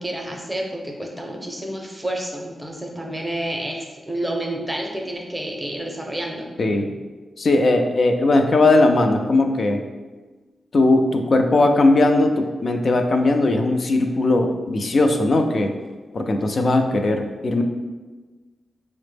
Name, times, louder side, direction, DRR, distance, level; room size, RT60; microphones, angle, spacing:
voice 1, 0.0-6.5, right 1 dB, 10° right, 0 dB, 0.6 m, -29 dB
voice 2, 7.4-9.8 10.7-15.7 16.1-17.6, left 2 dB, 55° left, 5 dB, 0.3 m, -18 dB
4.1 x 2.0 x 3.3 m, 1.3 s
cardioid pair, 80°, 0 cm